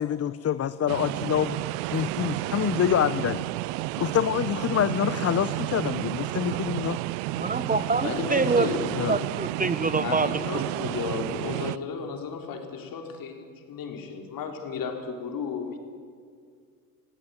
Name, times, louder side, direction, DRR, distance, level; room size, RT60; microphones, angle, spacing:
voice 1, 0.0-1.6 1.9-3.5 3.9-7.0 9.0-9.2, left 9 dB, 40° left, 14 dB, 0.8 m, -26 dB
sound 1, 0.9-11.8, right 20 dB, 85° right, 0.5 m, -31 dB
voice 2, 7.3-8.7 9.1-10.9, right 3 dB, 20° right, 13 dB, 1.3 m, -26 dB
voice 3, 8.0-8.9 10.0-15.8, left 5 dB, 60° left, 4 dB, 4.0 m, -33 dB
19.0 x 16.0 x 9.4 m, 2.1 s
hypercardioid pair, 70°, 39 cm